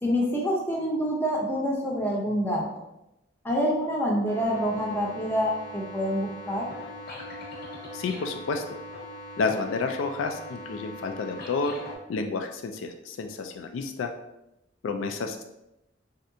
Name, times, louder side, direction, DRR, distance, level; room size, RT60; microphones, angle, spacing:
voice 1, 0.0-2.6 3.4-6.6, equal, 10° left, -3 dB, 0.6 m, -26 dB
sound 1, 4.3-12.0, left 1 dB, 55° left, 0.8 m, -41 dB
voice 2, 7.9-8.6 9.4-11.7 12.1-14.1 14.8-15.4, left 4 dB, 85° left, 5 dB, 0.3 m, -30 dB
3.2 x 2.7 x 2.6 m, 0.88 s
head